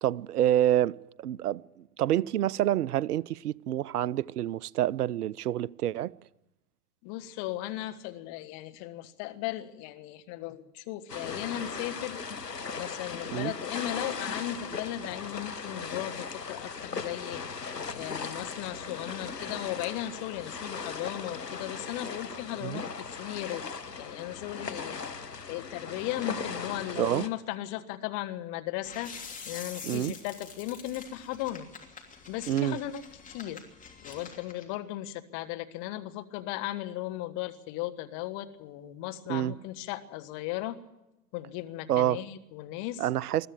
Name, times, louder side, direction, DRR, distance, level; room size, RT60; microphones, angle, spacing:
voice 1, 0.0-6.1 13.3-13.5 22.6-22.8 27.0-27.2 29.8-30.1 32.5-32.8 39.3-39.5 41.9-42.2 43.0-43.5, right 12 dB, 70° right, 0.6 m, -27 dB
voice 2, 7.0-12.2 12.8-17.4 17.9-23.6 24.0-25.1 25.5-29.1 29.5-31.7 32.3-33.0 33.3-33.6 34.0-40.8 41.3-43.0, left 14 dB, 40° left, 1.6 m, -36 dB
sound 1, 11.1-27.3, left 5 dB, 90° left, 1.5 m, -38 dB
sound 2, 28.8-34.7, left 5 dB, 15° left, 3.1 m, -46 dB
21.5 x 13.5 x 9.2 m
figure-of-eight pair, 100°, 47 cm